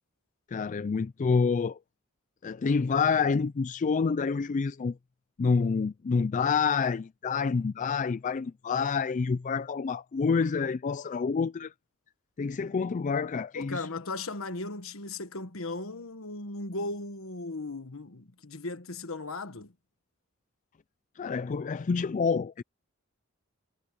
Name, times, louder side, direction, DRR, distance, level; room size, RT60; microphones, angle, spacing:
voice 1, 0.5-1.8 2.4-5.0 5.4-11.7 12.4-13.9 21.2-22.6, left 5 dB, 35° left, 0.4 m, -28 dB
voice 2, 13.5-19.7, left 2 dB, 70° left, 1.4 m, -37 dB
head